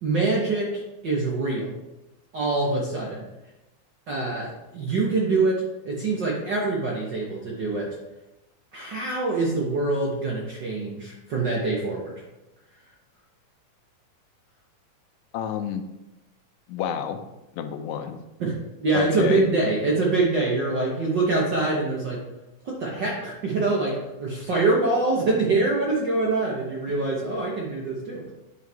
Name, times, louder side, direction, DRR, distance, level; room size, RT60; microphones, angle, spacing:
voice 1, 0.0-1.7 2.3-3.2 4.1-7.9 8.7-12.1 18.4-22.2 22.6-28.3, right 3 dB, 70° right, -3 dB, 1.0 m, -25 dB
voice 2, 15.3-15.9 16.7-17.2 17.5-18.2 18.9-19.4 26.9-27.0, left 8 dB, 75° left, 7 dB, 1.8 m, -29 dB
9.3 x 5.6 x 3.4 m, 0.98 s
omnidirectional pair, 3.6 m